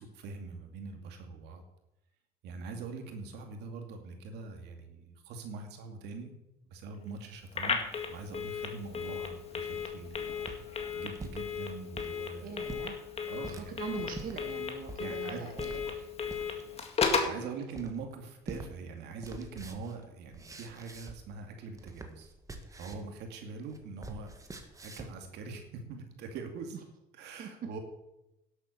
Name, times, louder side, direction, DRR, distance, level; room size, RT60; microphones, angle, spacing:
voice 1, 0.0-1.6 2.4-6.4 6.7-7.8 8.1-12.6 13.3-13.7 15.0-15.5 17.2-22.3 22.7-26.8 27.1-27.8, right 4 dB, 80° right, 5 dB, 2.3 m, -43 dB
Telephone, 7.5-17.4, left 6 dB, 35° left, 2.0 m, -35 dB
sound 1, 10.5-11.4 11.9-12.1 12.6-12.9 13.4-13.7 14.1-14.4 14.9-15.0 15.6-15.8 16.3-16.6 17.0-17.2 17.7-18.1 18.5-18.7 19.0-21.4 21.7-23.1 23.4-25.2, right 2 dB, 20° right, 1.6 m, -45 dB
voice 2, 12.4-16.1 17.4-17.5 27.4-27.5, right 6 dB, 55° right, 4 dB, 1.6 m, -43 dB
11.5 x 8.1 x 6.7 m, 0.89 s
cardioid pair, 110°, 17 cm